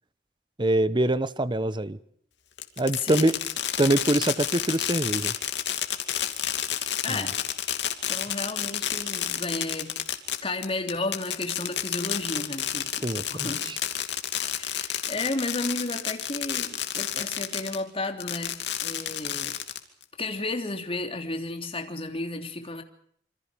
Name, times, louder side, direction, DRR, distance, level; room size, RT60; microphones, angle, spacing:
voice 1, 0.6-2.0 2.8-3.3 3.8-5.3 7.1-7.3 13.0-13.8, right 1 dB, 25° right, 15 dB, 1.0 m, -24 dB
Fireworks, 2.6-17.8 18.2-20.0, left 10 dB, 75° left, 2.6 m, -30 dB
voice 2, 3.0-3.5 7.0-7.4 8.1-9.9 10.4-13.7 14.5-19.6 20.2-22.8, left 2 dB, 30° left, 5 dB, 3.2 m, -33 dB
27.0 x 26.5 x 5.2 m, 0.64 s
head